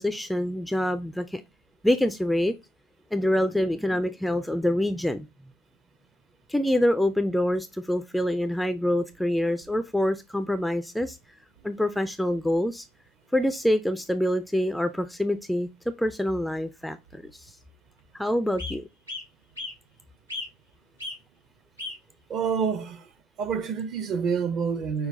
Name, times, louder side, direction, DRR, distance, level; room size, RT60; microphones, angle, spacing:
voice 1, 0.0-1.4 1.8-2.5 3.1-5.3 6.5-11.2 11.6-12.9 13.3-15.7 16.0-17.5 18.1-18.9, left 1 dB, ahead, 0.3 m, -26 dB
sound 1, 9.1-10.1 11.2-11.3 11.5-11.6 12.3-12.6 12.9-13.0 13.3-13.5 13.9-14.1 15.0-15.1 15.5-15.6 16.7-16.8 17.0-17.5 18.0-18.1 18.6-18.8 19.1-19.8 20.3-20.7 21.0-21.2 21.8-22.0 22.7-22.8, left 2 dB, 90° right, 1.7 m, -37 dB
voice 2, 22.3-23.1 23.4-25.1, right 6 dB, 40° right, 0.7 m, -27 dB
5.6 x 2.2 x 4.0 m
figure-of-eight pair, 75°, 0 cm